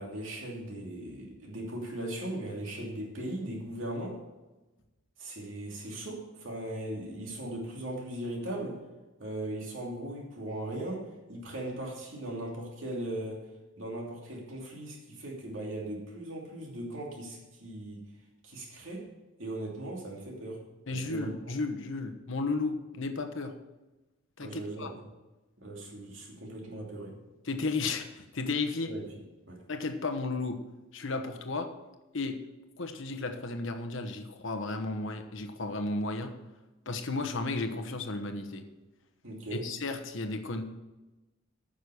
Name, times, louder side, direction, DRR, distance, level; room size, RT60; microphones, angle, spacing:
voice 1, 0.0-4.2 5.2-8.8 9.2-13.4 13.8-18.0 18.4-19.1 19.4-21.3 24.4-24.9 25.6-27.2 28.9-29.0 29.5-29.6 39.2-39.7, right 1 dB, 70° right, -1 dB, 2.8 m, -38 dB
voice 2, 20.9-23.5 24.4-24.9 27.4-28.9 29.7-30.6 30.9-31.7 32.1-32.4 32.8-36.3 36.9-38.6 39.5-40.6, left 3 dB, 70° left, 6 dB, 1.1 m, -33 dB
9.3 x 6.4 x 7.0 m, 1.1 s
head